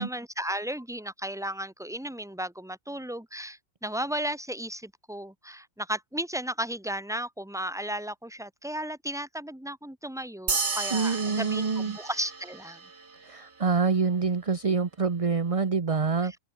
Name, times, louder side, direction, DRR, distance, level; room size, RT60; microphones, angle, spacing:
voice 1, 0.0-12.8 16.2-16.4, right 1 dB, ahead, 2.1 m, -34 dB
sound 1, 10.5-13.2, right 4 dB, 55° right, 2.6 m, -33 dB
voice 2, 10.9-12.0 13.2-16.4, right 5 dB, 30° right, 0.9 m, -26 dB
omnidirectional pair, 1.4 m